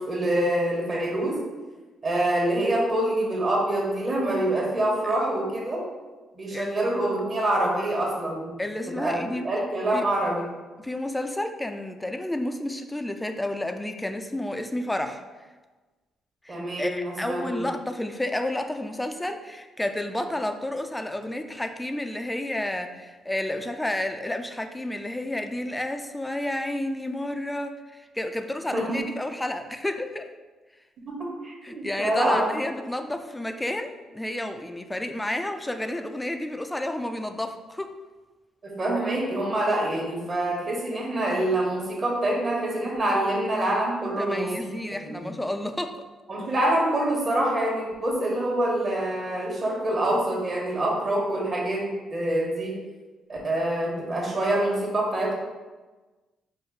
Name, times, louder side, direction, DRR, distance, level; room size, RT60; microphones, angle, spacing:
voice 1, 0.0-1.4 2.0-5.8 6.3-8.6 9.0-10.5 16.5-17.6 28.7-29.0 31.1-32.5 38.6-44.7 45.0-45.2 46.3-52.7 53.3-55.3, right 1 dB, 45° right, -3 dB, 1.2 m, -26 dB
voice 2, 6.5-7.1 8.6-9.5 9.9-10.1 10.8-15.2 16.4-30.3 31.6-37.9 44.0-46.1, left 1 dB, 10° left, 7 dB, 0.4 m, -31 dB
5.2 x 2.0 x 3.9 m, 1.2 s
cardioid pair, 90°, 0 cm